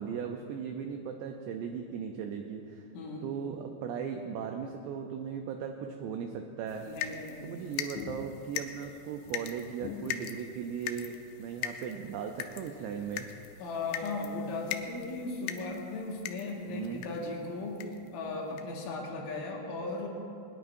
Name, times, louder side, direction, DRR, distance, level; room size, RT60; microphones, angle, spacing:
voice 1, 0.0-2.8 3.2-6.9 7.4-13.3 16.7-17.0, right 7 dB, 85° right, 4 dB, 2.4 m, -37 dB
sound 1, 6.7-17.3 17.8-18.1 18.6-18.7 19.0-19.1, left 10 dB, 90° left, 2.6 m, -41 dB
voice 2, 6.8-7.6 13.6-17.8 18.1-20.1, left 3 dB, 70° left, -2 dB, 4.2 m, -37 dB
20.5 x 20.0 x 2.7 m, 2.7 s
omnidirectional pair, 6.0 m